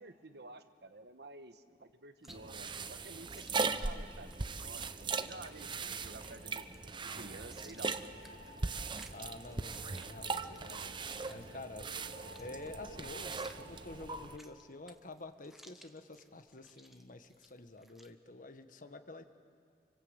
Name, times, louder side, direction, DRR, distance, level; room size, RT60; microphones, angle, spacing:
voice 1, 0.0-6.7 7.0-8.4 11.5-11.6, right 2 dB, 65° right, 9 dB, 1.3 m, -52 dB
Chewing mastication, 2.2-18.1, equal, ahead, 1.2 m, -62 dB
sound 1, 2.3-14.4, right 4 dB, 25° right, 0.7 m, -39 dB
sound 2, 4.2-15.4, right 1 dB, 70° left, 2.0 m, -56 dB
voice 2, 7.0-7.4 9.1-11.0 11.3-11.9 12.4-19.2, left 2 dB, 50° left, 8 dB, 1.4 m, -49 dB
28.5 x 25.0 x 8.1 m, 2.6 s
head